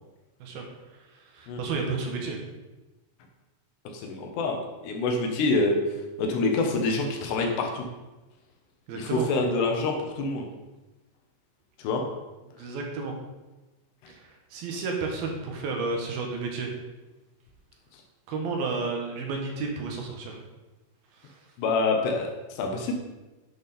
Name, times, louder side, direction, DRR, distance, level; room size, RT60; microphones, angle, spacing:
voice 1, 0.4-2.4 8.9-9.3 12.6-13.1 14.1-16.7 18.3-20.4 21.1-21.5, right 4 dB, 65° right, 1 dB, 2.5 m, -32 dB
voice 2, 3.9-5.8 6.2-7.8 8.9-10.5 11.8-12.0 21.6-22.9, left 3 dB, 70° left, 2 dB, 3.0 m, -26 dB
11.0 x 7.7 x 4.3 m, 1.1 s
omnidirectional pair, 5.8 m